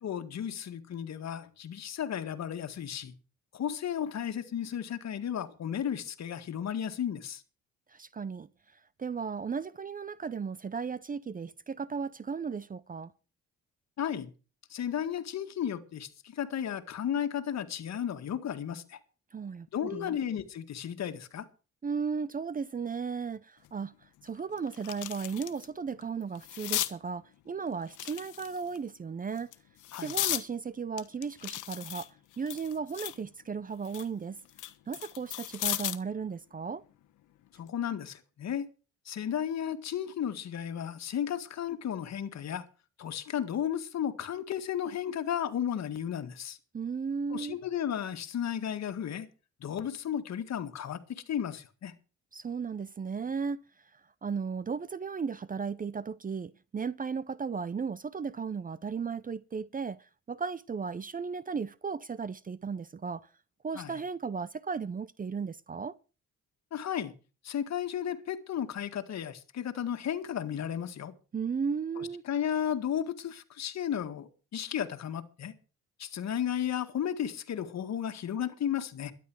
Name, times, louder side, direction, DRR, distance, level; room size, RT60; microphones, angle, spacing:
voice 1, 0.0-3.1 3.5-7.4 14.0-14.3 14.7-19.0 19.7-21.5 29.9-30.1 37.6-38.7 39.1-42.6 43.0-46.6 47.3-49.3 49.6-51.9 63.8-64.0 66.7-67.1 67.4-71.1 72.0-75.5 76.0-79.1, left 9 dB, 60° left, 1.9 m, -34 dB
voice 2, 7.9-8.5 9.0-13.1 19.3-20.2 21.8-23.9 24.2-29.5 30.0-32.1 32.4-34.4 34.9-36.8 46.7-47.6 52.3-53.6 54.2-60.0 60.3-63.3 63.6-66.0 71.3-72.2, right 5 dB, 30° right, 0.6 m, -35 dB
sound 1, 23.6-23.7 24.2-25.7 26.0-26.9 27.9-28.8 29.4-30.5 31.0-33.2 33.6-36.1 37.5-37.7, left 14 dB, 80° left, 1.2 m, -36 dB
12.5 x 10.5 x 6.2 m
cardioid pair, 90°, 30 cm